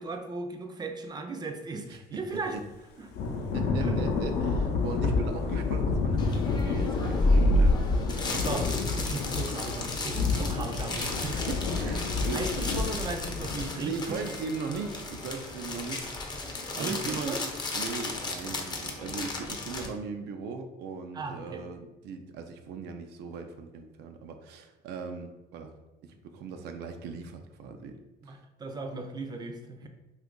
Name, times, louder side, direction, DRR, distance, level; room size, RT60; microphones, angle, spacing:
voice 1, 0.0-2.6 3.0-3.1 3.8-4.0 8.3-8.7 9.0-11.0 12.3-14.2 16.7-17.5 21.1-21.6 28.2-29.9, right 3 dB, 25° right, 4 dB, 0.4 m, -36 dB
Thunder / Rain, 3.1-13.7, left 4 dB, 75° left, 0.5 m, -29 dB
voice 2, 3.5-8.2 9.2-9.3 10.9-12.7 13.8-16.5 16.8-17.4 17.7-25.7 26.0-27.9 28.3-28.4 29.8-29.9, right 4 dB, 80° right, 6 dB, 0.5 m, -39 dB
sound 1, 6.2-19.9, left 1 dB, 25° left, 0.5 m, -31 dB
2.7 x 2.4 x 3.7 m, 1.0 s
cardioid pair, 110°, 17 cm